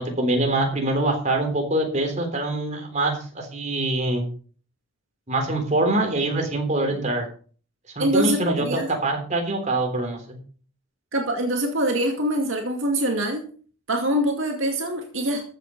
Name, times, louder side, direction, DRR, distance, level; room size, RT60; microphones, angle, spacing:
voice 1, 0.0-4.2 5.3-7.3 8.0-10.4, right 2 dB, 35° right, 3 dB, 3.5 m, -24 dB
voice 2, 8.0-8.9 11.1-13.4 13.9-15.5, right 1 dB, 65° right, 2 dB, 2.3 m, -24 dB
14.5 x 7.9 x 5.4 m, 0.43 s
head